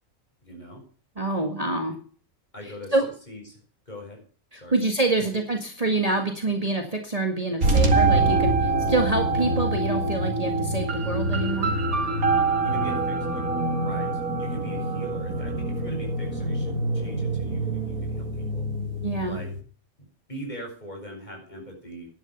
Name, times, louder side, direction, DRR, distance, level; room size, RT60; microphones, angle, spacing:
voice 1, 0.4-0.8 2.5-3.0 3.3-3.6 3.9-4.2 4.6-4.8 5.2-5.3 12.3-13.5 13.8-18.7 19.2-19.5 20.0-22.1, equal, 30° left, 1 dB, 7.0 m, -41 dB
voice 2, 1.2-2.0 2.9-3.1 4.5-11.7 19.0-19.4, right 2 dB, 25° right, 4 dB, 2.0 m, -26 dB
sound 1, 7.6-19.6, right 2 dB, 90° right, 2.6 m, -25 dB
11.5 x 11.5 x 6.8 m, 0.43 s
omnidirectional pair, 1.4 m